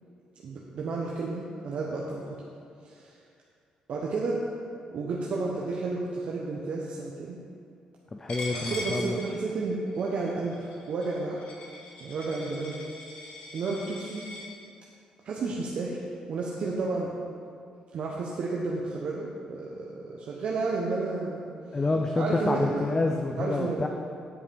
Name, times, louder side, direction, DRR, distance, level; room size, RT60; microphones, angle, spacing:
voice 1, 0.4-2.2 2.8-3.1 3.9-4.4 4.9-7.4 8.7-11.4 12.0-12.8 13.5-14.2 15.2-16.0 16.3-17.1 17.9-21.5 22.2-22.8 23.4-23.9, right 3 dB, 60° right, -3 dB, 0.9 m, -31 dB
voice 2, 8.1-9.2 21.7-23.9, left 2 dB, 25° left, 3 dB, 0.5 m, -28 dB
Coin (dropping), 8.3-14.5, left 2 dB, 60° left, 2.0 m, -41 dB
10.0 x 4.9 x 5.2 m, 2.4 s
cardioid pair, 100°, 2 cm